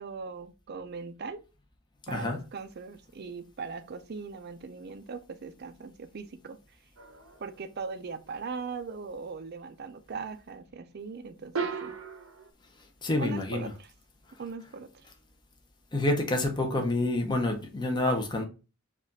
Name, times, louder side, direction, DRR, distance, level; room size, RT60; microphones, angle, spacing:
voice 1, 0.0-1.4 2.1-6.6 7.4-11.9 13.2-13.9 14.4-15.1, right 4 dB, 55° right, 0.5 m, -40 dB
voice 2, 2.1-2.4 13.0-13.7 15.9-18.4, left 2 dB, 20° left, 0.8 m, -28 dB
sound 1, 7.0-7.6 11.5-12.5, right 5 dB, 90° right, 0.8 m, -35 dB
4.9 x 2.5 x 4.1 m
head